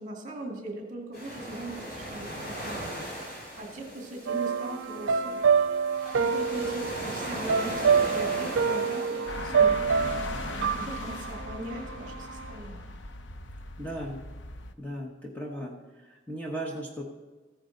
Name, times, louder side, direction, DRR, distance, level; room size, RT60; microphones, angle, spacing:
voice 1, 0.0-3.0 3.6-5.4 6.2-9.9 10.4-12.9, right 1 dB, 40° right, 1 dB, 2.1 m, -39 dB
sound 1, 1.1-11.3, equal, 55° left, 4.2 m, -39 dB
sound 2, 4.3-12.5, right 6 dB, 85° right, 0.4 m, -27 dB
sound 3, 9.3-14.7, left 2 dB, 70° left, 0.7 m, -39 dB
voice 2, 13.8-14.2 14.8-15.7 16.1-17.0, right 1 dB, 10° left, -1 dB, 1.1 m, -36 dB
14.5 x 9.6 x 3.9 m, 1.3 s
head